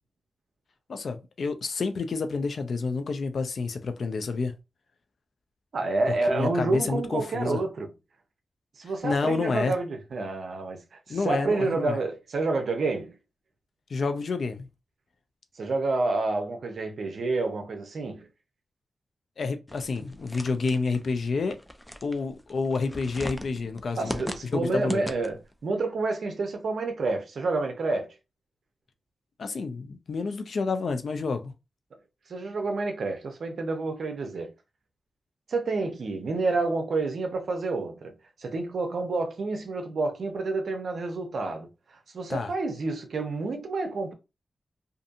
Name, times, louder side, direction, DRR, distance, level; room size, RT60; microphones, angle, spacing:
voice 1, 0.9-4.5 6.3-7.6 9.0-9.7 11.1-12.0 13.9-14.7 19.4-21.6 22.0-25.1 29.4-31.5 42.3-42.5, left 4 dB, 70° left, 0.4 m, -29 dB
voice 2, 5.7-7.9 8.8-13.2 15.5-18.3 24.0-28.2 32.3-34.5 35.5-38.1 38.4-44.1, right 3 dB, 75° right, 0.5 m, -29 dB
sound 1, 19.7-25.5, left 1 dB, 10° left, 0.4 m, -38 dB
2.6 x 2.6 x 2.5 m
cardioid pair, 55°, 0 cm